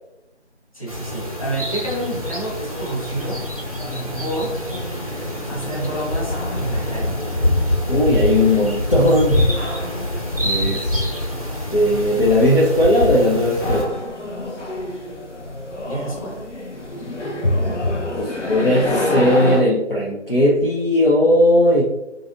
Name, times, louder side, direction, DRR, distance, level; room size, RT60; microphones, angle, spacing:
voice 1, 0.7-3.4 3.8-4.6 5.5-7.1 15.8-16.4, right 1 dB, 30° left, -6 dB, 1.2 m, -29 dB
sound 1, 0.9-13.8, left 1 dB, 30° right, 0.5 m, -25 dB
sound 2, 2.1-19.6, left 1 dB, 80° left, 0.9 m, -30 dB
voice 2, 7.9-9.5 10.4-11.0 11.7-13.9 17.4-17.5 18.2-21.8, left 1 dB, 50° left, -4 dB, 0.7 m, -17 dB
4.8 x 2.7 x 2.5 m, 0.99 s
figure-of-eight pair, 160°, 35 cm